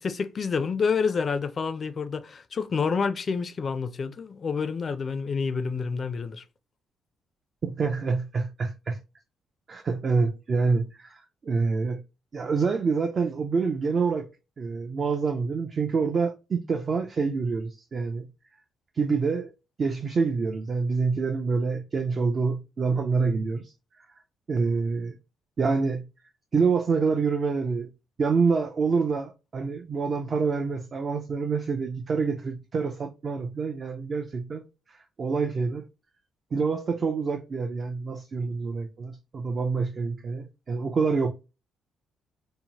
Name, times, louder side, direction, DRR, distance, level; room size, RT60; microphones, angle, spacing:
voice 1, 0.0-6.4, left 5 dB, 45° left, 0.4 m, -28 dB
voice 2, 7.6-9.0 9.7-12.0 12.3-14.3 14.6-18.3 19.0-19.5 19.8-23.7 24.5-25.2 25.6-26.1 26.5-27.9 28.2-34.6 34.9-35.8 36.5-41.3, right 4 dB, 45° right, 0.4 m, -27 dB
2.7 x 2.1 x 2.9 m
cardioid pair, 90°, 0 cm